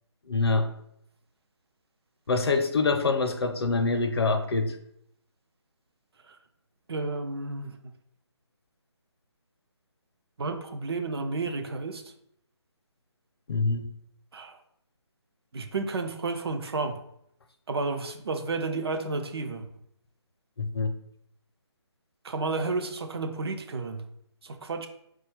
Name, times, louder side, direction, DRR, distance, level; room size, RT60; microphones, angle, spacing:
voice 1, 0.3-0.7 2.3-4.8 13.5-13.9 20.6-20.9, left 3 dB, 60° left, 6 dB, 0.6 m, -25 dB
voice 2, 6.9-7.9 10.4-12.0 14.3-14.6 15.5-17.0 17.7-19.7 22.2-24.1 24.4-24.9, right 3 dB, 60° right, 6 dB, 0.5 m, -31 dB
4.2 x 2.3 x 4.4 m, 0.74 s
figure-of-eight pair, 160°, 15 cm